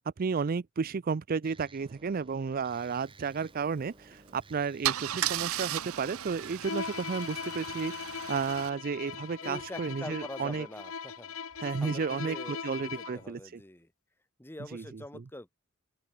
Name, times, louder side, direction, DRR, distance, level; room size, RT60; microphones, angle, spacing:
voice 1, 0.2-10.7 11.6-13.6 14.7-15.2, right 5 dB, 40° right, 0.4 m, -33 dB
sound 1, 1.4-6.7, right 2 dB, 25° right, 6.2 m, -56 dB
Car / Engine starting / Idling, 4.1-4.3 4.8-8.7, right 12 dB, 80° right, 0.8 m, -35 dB
Bowed string instrument, 6.6-13.3, left 6 dB, 75° left, 1.4 m, -40 dB
voice 2, 9.4-11.3 11.8-13.9 14.4-15.5, left 1 dB, 10° left, 1.2 m, -44 dB
open air
head